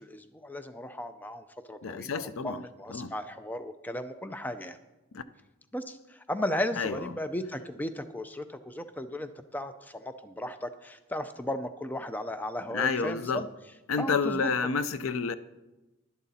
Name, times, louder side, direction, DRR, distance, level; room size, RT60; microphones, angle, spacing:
voice 1, 0.0-4.8 5.7-13.5 14.0-14.5, left 1 dB, 10° left, 0.4 m, -36 dB
voice 2, 1.8-2.6 2.9-3.1 5.1-5.2 6.8-7.0 12.7-13.4 13.9-15.3, left 5 dB, 70° left, 0.5 m, -29 dB
11.5 x 11.0 x 4.2 m
head